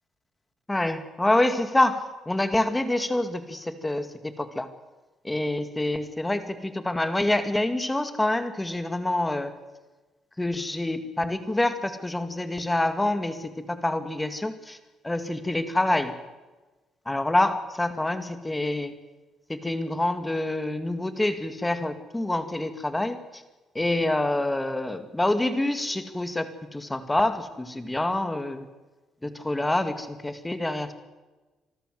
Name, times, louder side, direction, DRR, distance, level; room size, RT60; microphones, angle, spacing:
voice 1, 0.7-4.7 5.2-9.5 10.4-14.8 15.0-16.1 17.1-18.9 19.5-23.4 23.7-28.7 29.2-30.9, left 1 dB, 10° left, 10 dB, 2.1 m, -27 dB
26.0 x 14.0 x 9.3 m, 1.2 s
cardioid pair, 120°, 0 cm